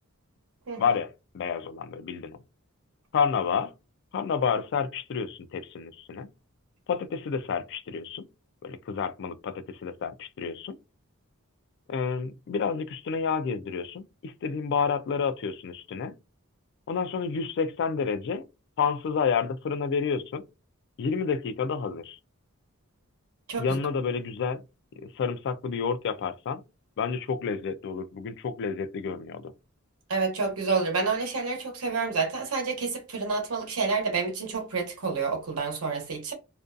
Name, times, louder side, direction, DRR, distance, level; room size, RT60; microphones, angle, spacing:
voice 1, 0.8-2.4 3.1-3.7 4.1-6.3 6.9-8.2 8.6-10.8 11.9-16.1 16.9-18.4 18.8-20.4 21.0-22.2 23.6-24.6 25.0-26.6 27.0-29.5, left 6 dB, 55° left, 0.3 m, -29 dB
voice 2, 30.1-36.3, right 4 dB, 90° right, 0.9 m, -29 dB
2.5 x 2.2 x 2.4 m
head